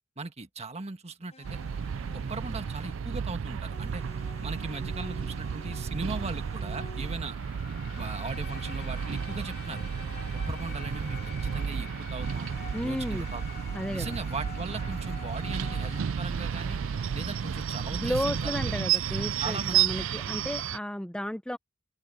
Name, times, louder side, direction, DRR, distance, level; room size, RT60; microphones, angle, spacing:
voice 1, 0.2-1.6 2.1-4.0 4.4-7.4 7.9-9.8 10.3-12.5 12.8-13.6 13.9-16.8 17.1-18.9 19.4-19.8, right 3 dB, 35° right, 1.5 m, -38 dB
sound 1, 1.3-3.2 3.7-7.3 7.9-11.8 12.2-16.1 17.0-20.7, left 4 dB, 35° left, 6.3 m, -50 dB
sound 2, 1.4-20.8, right 8 dB, 75° right, 0.4 m, -32 dB
sound 3, 6.8-17.1, left 7 dB, 55° left, 5.6 m, -48 dB
voice 2, 12.7-13.3 13.7-14.2 17.9-21.6, equal, 5° left, 0.6 m, -33 dB
open air
head